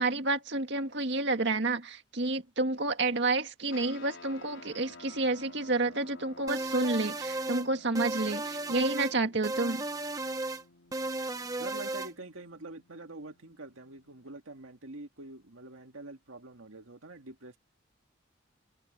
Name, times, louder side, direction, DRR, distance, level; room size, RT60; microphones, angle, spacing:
voice 1, 0.0-9.8, right 2 dB, 60° right, 2.0 m, -30 dB
sound 1, 3.7-14.4, left 3 dB, 70° left, 4.3 m, -54 dB
sound 2, 6.5-7.7 8.0-9.2 9.4-10.6 10.9-12.1, right 2 dB, 15° right, 1.1 m, -34 dB
voice 2, 11.6-17.6, right 2 dB, 85° right, 2.1 m, -45 dB
head